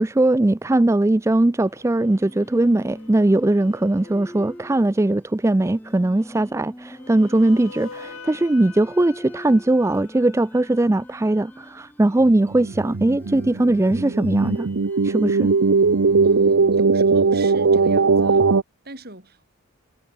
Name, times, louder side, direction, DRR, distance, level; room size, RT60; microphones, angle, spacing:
voice 1, 0.0-14.7 15.0-15.5, right 2 dB, 15° right, 0.3 m, -20 dB
sound 1, 1.6-4.7 6.8-11.6, left 4 dB, 85° left, 2.1 m, -46 dB
sound 2, 1.8-16.9, equal, 10° left, 2.1 m, -45 dB
sound 3, 12.3-18.6, right 4 dB, 80° right, 0.7 m, -19 dB
voice 2, 16.2-18.5 18.8-19.4, right 2 dB, 45° right, 7.4 m, -41 dB
head